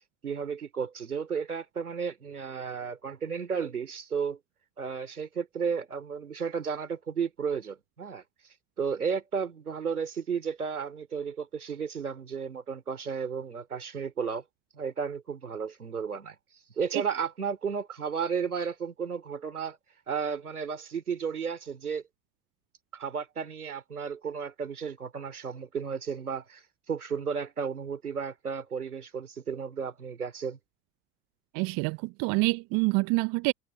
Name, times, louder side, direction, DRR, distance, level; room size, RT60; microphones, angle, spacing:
voice 1, 0.2-4.4 4.8-8.2 8.8-14.4 14.7-16.4 16.8-19.8 20.1-22.0 22.9-30.6, right 6 dB, 90° right, 3.9 m, -33 dB
voice 2, 31.5-33.5, right 27 dB, 50° right, 0.8 m, -26 dB
hypercardioid pair, 75°, 43 cm